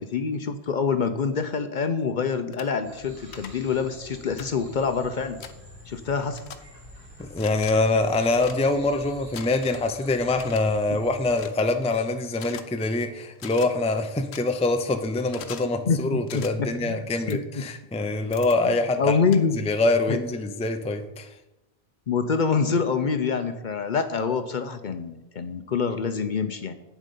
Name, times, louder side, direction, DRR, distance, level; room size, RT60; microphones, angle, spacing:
voice 1, 0.0-5.4 5.9-6.4 10.9-11.0 15.6-17.6 18.6-19.6 20.1-20.2 22.1-26.7, left 5 dB, 55° left, 9 dB, 0.7 m, -26 dB
sound 1, 2.5-2.7 3.3-3.5 4.4-4.5 5.4-5.5 6.3-6.6 7.3-7.7 8.4-8.6 9.3-9.8 10.3-10.6 11.3-11.6 12.4-12.6 13.4-13.7 14.3-14.4 15.3-15.7 16.3-16.5 17.3-17.4 18.3-18.6 19.3-19.4, left 8 dB, 85° left, 1.0 m, -41 dB
sound 2, 2.8-11.4, equal, 60° right, 2.7 m, -47 dB
voice 2, 7.2-19.2 19.6-21.3, left 2 dB, 10° left, 7 dB, 0.5 m, -25 dB
8.3 x 7.4 x 5.4 m, 0.97 s
omnidirectional pair, 1.1 m